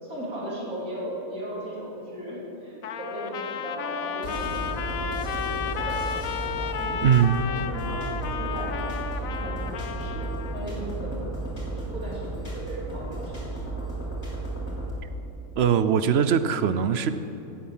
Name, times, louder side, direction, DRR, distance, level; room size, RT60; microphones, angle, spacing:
voice 1, 0.0-7.1 7.4-8.1 8.4-8.8 9.2-11.2 11.7-14.0, right 1 dB, 75° right, -6 dB, 3.9 m, -37 dB
Trumpet, 2.8-10.6, left 7 dB, 75° left, 1.1 m, -33 dB
sound 1, 4.2-14.9, right 2 dB, 50° left, 3.6 m, -33 dB
voice 2, 7.0-7.4 15.6-17.1, right 8 dB, 55° right, 12 dB, 0.8 m, -21 dB
16.5 x 9.3 x 7.4 m, 2.9 s
omnidirectional pair, 1.5 m